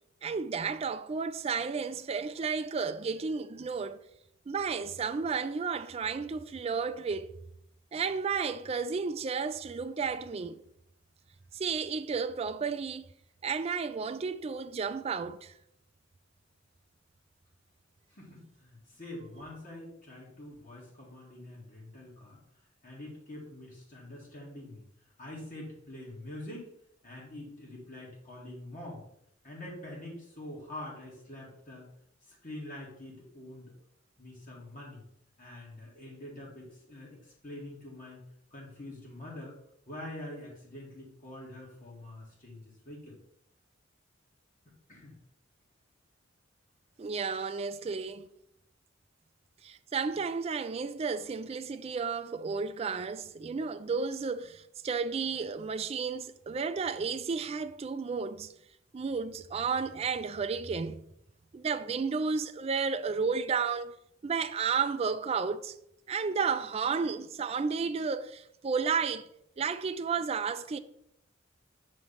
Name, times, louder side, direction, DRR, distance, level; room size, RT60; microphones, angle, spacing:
voice 1, 0.2-4.0 4.5-7.3 7.9-10.6 11.5-13.0 13.4-15.5 47.0-48.3 49.6-58.5 58.9-61.0 61.5-63.9 64.2-65.7 66.1-69.3 69.6-70.8, right 5 dB, 30° right, 0.3 m, -32 dB
voice 2, 18.1-22.4 22.8-24.8 25.2-26.7 27.0-29.0 29.4-31.9 32.2-33.7 34.2-35.0 35.4-38.2 38.5-39.5 39.9-43.2 44.9-45.1, left 1 dB, 45° left, 2.0 m, -45 dB
6.1 x 3.2 x 5.6 m
head